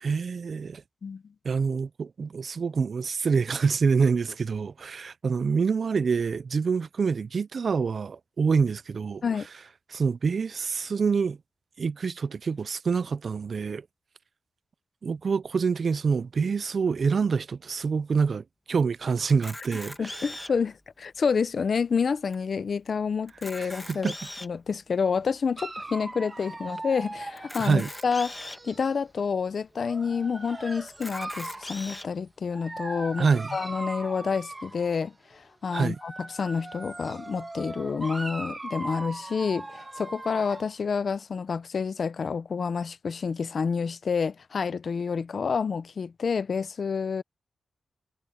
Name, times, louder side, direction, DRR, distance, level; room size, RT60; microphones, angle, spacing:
voice 1, 0.0-0.8 1.4-9.2 9.9-11.4 11.8-13.8 15.0-20.2 23.6-24.1 27.6-27.9 33.2-33.6 35.7-36.0, right 5 dB, 50° right, 0.3 m, -26 dB
Camera, 19.3-20.7 21.3-21.4 21.7-21.8 22.3-22.4 23.2-24.6 25.2-25.3 27.4-28.6 29.3-29.4 29.7-29.8 30.9-32.1, left 1 dB, 10° left, 1.5 m, -40 dB
voice 2, 20.0-24.1 24.4-47.2, left 5 dB, 55° left, 0.6 m, -29 dB
Dog, 25.6-29.0 29.8-31.7 32.5-35.1 35.8-40.7, right 2 dB, 20° right, 1.3 m, -39 dB
wide cardioid pair, 160°, 0 cm